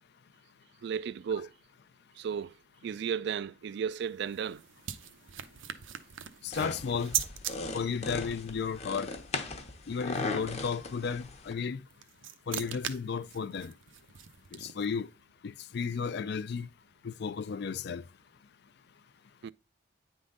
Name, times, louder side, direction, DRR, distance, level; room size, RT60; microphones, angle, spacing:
voice 1, 0.8-1.5 2.2-2.5 2.8-4.6 19.4-19.5, right 7 dB, 60° right, 0.3 m, -34 dB
sound 1, 3.9-7.5 11.7-15.0, right 10 dB, 85° right, 0.7 m, -39 dB
voice 2, 6.4-7.2 7.7-9.1 9.9-11.8 12.5-13.7 14.5-15.1 15.4-16.7 17.0-18.0, left 6 dB, 60° left, 0.4 m, -34 dB
sound 2, 6.5-11.5, left 3 dB, 35° left, 0.9 m, -38 dB
9.3 x 3.7 x 3.8 m
head